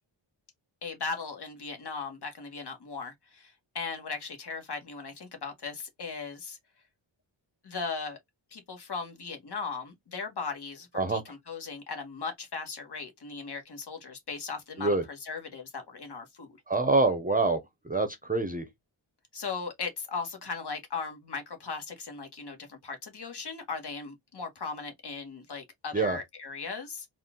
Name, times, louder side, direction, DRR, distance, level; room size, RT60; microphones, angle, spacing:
voice 1, 0.8-6.6 7.6-8.2 8.5-16.6 19.3-27.1, left 5 dB, 55° left, 1.5 m, -38 dB
voice 2, 16.7-18.7 25.9-26.2, right 3 dB, 20° right, 0.7 m, -26 dB
4.1 x 2.5 x 3.7 m
wide cardioid pair, 115°, 47 cm